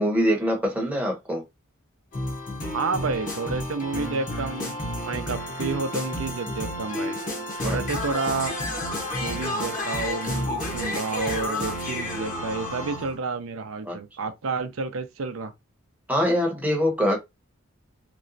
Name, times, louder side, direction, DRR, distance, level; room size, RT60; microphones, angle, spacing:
voice 1, 0.0-1.4 7.6-7.8 13.9-14.0 16.1-17.2, equal, 5° right, 0.8 m, -23 dB
sound 1, 2.1-13.2, left 1 dB, 40° left, 0.9 m, -31 dB
voice 2, 2.7-7.2 7.6-8.6 9.2-15.5, right 4 dB, 70° right, 0.5 m, -30 dB
3.1 x 3.0 x 2.6 m
head